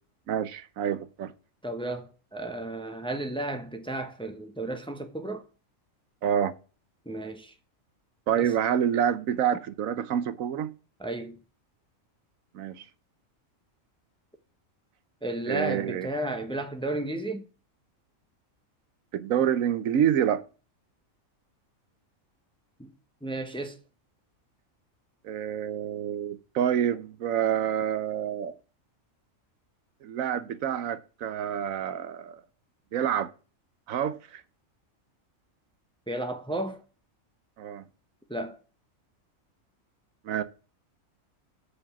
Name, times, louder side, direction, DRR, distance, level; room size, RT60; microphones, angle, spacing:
voice 1, 0.3-1.3 6.2-6.5 8.3-10.7 12.5-12.8 15.5-16.1 19.1-20.4 25.2-28.5 30.0-32.4 32.9-33.3 33.9-34.4 37.6-37.8 40.2-40.4, right 9 dB, 85° right, 1.2 m, -27 dB
voice 2, 1.6-5.5 7.1-7.5 8.4-8.5 11.0-11.4 15.2-17.4 22.8-22.9 23.2-23.8 36.1-36.8 38.3-38.6, right 1 dB, 5° left, 0.8 m, -33 dB
7.3 x 5.0 x 7.1 m
omnidirectional pair, 1.4 m